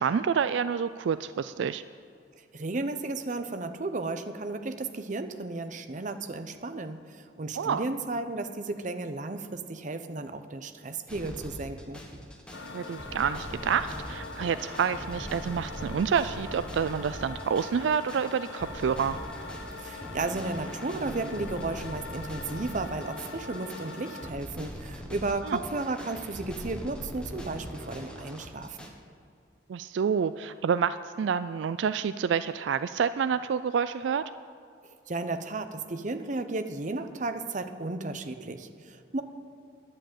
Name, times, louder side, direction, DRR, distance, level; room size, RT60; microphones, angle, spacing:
voice 1, 0.0-1.8 7.6-7.8 12.7-19.2 25.5-25.6 29.7-34.2, right 7 dB, 80° right, 13 dB, 0.3 m, -28 dB
voice 2, 2.4-12.0 19.8-28.9 35.1-39.2, right 2 dB, 45° right, 9 dB, 0.7 m, -34 dB
sound 1, 11.1-28.9, equal, 5° left, 1.3 m, -41 dB
sound 2, 12.5-24.3, left 3 dB, 85° left, 0.8 m, -42 dB
11.0 x 7.6 x 9.0 m, 2.5 s
head